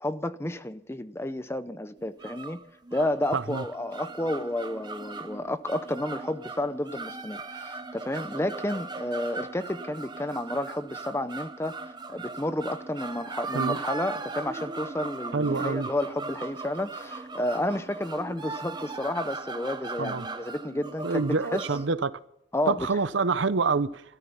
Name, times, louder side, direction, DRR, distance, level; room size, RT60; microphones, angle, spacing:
voice 1, 0.0-2.6 2.9-11.7 12.1-21.7 22.5-23.0, left 1 dB, 15° left, 0.6 m, -31 dB
sound 1, 2.0-21.9, right 3 dB, 20° right, 0.7 m, -38 dB
voice 2, 3.3-3.6 13.5-13.8 15.3-15.9 20.0-20.2 21.0-22.1 22.7-24.0, right 4 dB, 65° right, 0.6 m, -26 dB
14.0 x 13.5 x 5.8 m
head